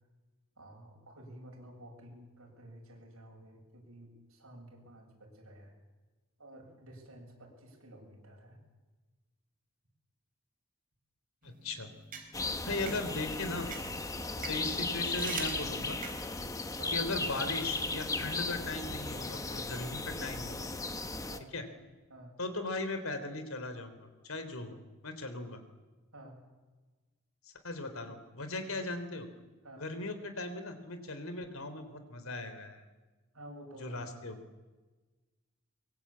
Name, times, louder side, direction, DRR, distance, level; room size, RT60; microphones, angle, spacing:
voice 1, 0.6-5.7 6.4-8.6 14.4-14.6 16.8-17.1 21.3-21.5 22.1-22.4 26.1-26.4 29.6-29.9 33.3-34.1, right 1 dB, 80° right, 1 dB, 7.7 m, -51 dB
voice 2, 11.4-11.9 12.6-13.7 14.5-16.0 16.9-20.7 21.5-21.6 22.4-24.8 25.0-25.6 27.4-29.3 29.7-32.8 33.8-34.4, left 2 dB, 75° left, 9 dB, 3.3 m, -38 dB
sound 1, 11.4-16.5, right 6 dB, 40° right, 4.0 m, -45 dB
sound 2, 12.3-21.4, left 3 dB, 15° left, 1.2 m, -36 dB
23.5 x 22.5 x 8.7 m, 1.3 s
head